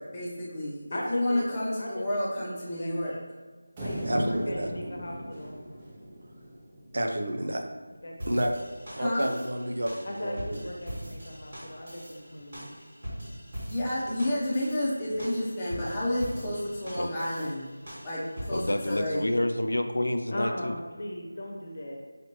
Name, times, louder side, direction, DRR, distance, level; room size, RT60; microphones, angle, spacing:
voice 1, 0.1-3.2 9.0-9.3 13.7-17.6 18.0-19.2, left 1 dB, 15° left, -8 dB, 0.7 m, -30 dB
voice 2, 0.9-1.5 1.8-3.3 3.8-5.6 7.9-8.5 10.0-12.8 20.3-22.0, left 1 dB, 50° left, 0 dB, 0.8 m, -38 dB
Big Sheet metalic strike, 3.8-7.1, equal, 15° right, 0.4 m, -38 dB
voice 3, 4.0-4.7 6.9-7.6 8.3-8.5 8.9-10.6, right 1 dB, 65° right, 3 dB, 0.5 m, -29 dB
sound 1, 8.2-18.9, equal, 45° right, 1.5 m, -42 dB
voice 4, 18.5-20.7, left 1 dB, 85° left, 7 dB, 0.3 m, -28 dB
4.9 x 3.0 x 3.0 m, 1.4 s
figure-of-eight pair, 175°, 0 cm